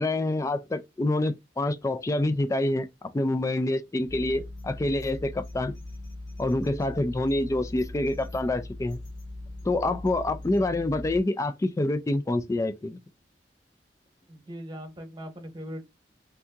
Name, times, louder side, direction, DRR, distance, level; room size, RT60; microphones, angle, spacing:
voice 1, 0.0-5.7 6.4-9.0 9.6-13.0, left 2 dB, 15° left, 0.3 m, -27 dB
sound 1, 4.0-11.2, left 1 dB, 80° left, 1.0 m, -40 dB
voice 2, 14.3-15.8, equal, 25° right, 1.0 m, -40 dB
3.5 x 2.7 x 2.3 m
head